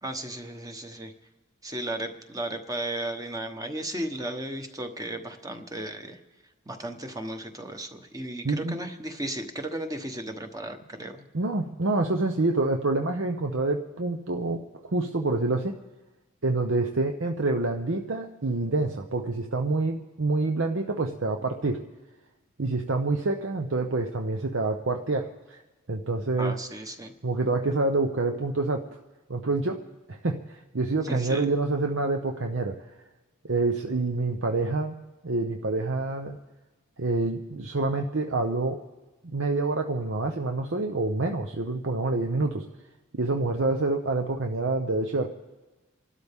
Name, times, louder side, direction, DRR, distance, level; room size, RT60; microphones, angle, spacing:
voice 1, 0.0-1.1 1.6-6.2 6.7-11.2 26.4-27.1 31.0-31.5, right 1 dB, 15° right, 6 dB, 1.1 m, -35 dB
voice 2, 8.4-8.8 11.3-15.7 16.4-21.8 22.6-25.6 25.9-26.6 27.2-28.9 29.3-29.8 30.1-32.8 33.4-35.0 35.2-36.4 37.0-38.8 39.2-42.6 43.1-45.3, right 2 dB, 65° right, 4 dB, 0.8 m, -27 dB
28.0 x 12.5 x 3.6 m, 1.2 s
head